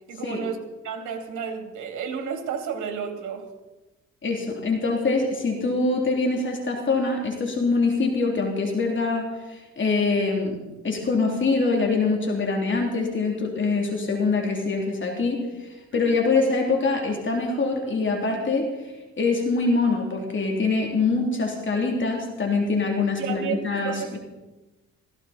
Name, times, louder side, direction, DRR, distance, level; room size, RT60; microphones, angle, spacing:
voice 1, 0.1-3.5 15.9-16.2 23.2-24.1, right 7 dB, 75° right, 4 dB, 2.9 m, -32 dB
voice 2, 4.2-10.6 10.8-18.7 19.2-24.2, left 3 dB, 40° left, 1 dB, 3.2 m, -24 dB
16.5 x 16.0 x 4.3 m, 1.1 s
cardioid pair, 90°, 30 cm